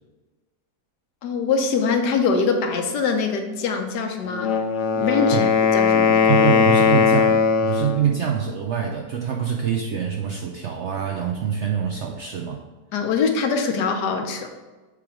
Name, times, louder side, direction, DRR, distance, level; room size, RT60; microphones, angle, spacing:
voice 1, 1.2-4.5 5.0-6.3 12.9-14.5, left 5 dB, 80° left, 5 dB, 1.4 m, -23 dB
Wind instrument woodwind instrument, 4.3-8.1, left 6 dB, 65° left, 0.8 m, -19 dB
voice 2, 6.3-12.6, right 8 dB, 75° right, 1 dB, 0.6 m, -25 dB
6.9 x 3.3 x 4.9 m, 1.2 s
omnidirectional pair, 1.7 m